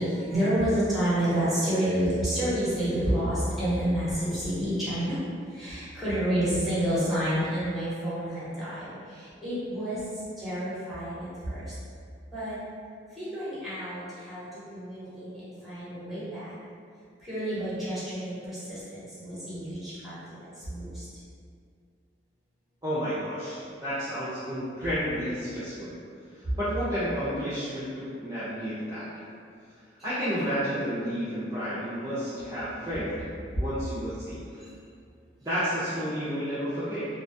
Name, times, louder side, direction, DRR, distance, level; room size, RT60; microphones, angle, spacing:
voice 1, 0.0-5.2 5.5-11.8 12.3-12.6 13.1-16.5 17.2-20.2 20.5-21.1 34.6-34.7, right 1 dB, ahead, -12 dB, 0.9 m, -29 dB
voice 2, 22.8-25.9 26.5-29.1 30.0-33.3 33.5-34.6 35.4-37.1, equal, 20° right, -13 dB, 0.4 m, -31 dB
2.3 x 2.2 x 2.5 m, 2.3 s
head